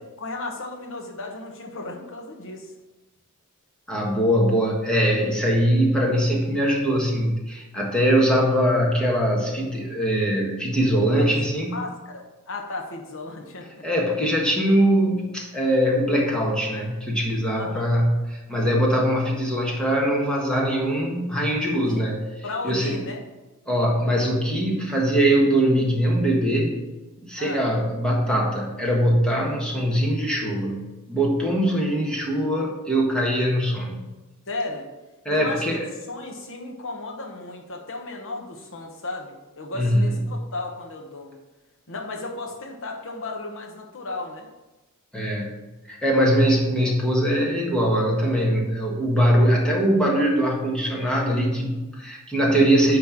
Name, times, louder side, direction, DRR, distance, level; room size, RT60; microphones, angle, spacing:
voice 1, 0.2-2.7 11.2-11.3 11.7-13.8 17.6-17.9 21.8-22.1 22.4-23.2 27.4-27.6 34.5-34.9 35.3-35.8 36.1-41.4 41.9-44.5, left 2 dB, 60° left, 1 dB, 1.1 m, -34 dB
voice 2, 3.9-11.8 13.8-22.2 22.6-23.0 23.7-26.8 27.2-34.0 35.2-35.9 39.7-40.4 45.1-45.5 45.9-53.0, equal, 5° left, -3 dB, 1.6 m, -22 dB
9.6 x 3.4 x 5.9 m, 1.1 s
head